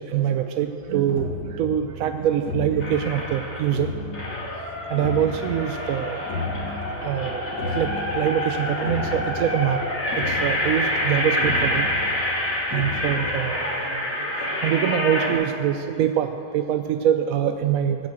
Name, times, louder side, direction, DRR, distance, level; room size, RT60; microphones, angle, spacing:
voice 1, 0.0-3.9 4.9-6.2 6.9-9.8 10.3-11.9 12.7-13.7 14.2-14.3 14.6-18.0, right 10 dB, 70° right, 8 dB, 0.8 m, -24 dB
sound 1, 0.8-13.4, left 2 dB, 75° left, 1.6 m, -34 dB
sound 2, 2.8-3.7 4.1-15.3, left 1 dB, 40° left, 2.8 m, -27 dB
18.5 x 7.1 x 7.8 m, 2.8 s
omnidirectional pair, 1.8 m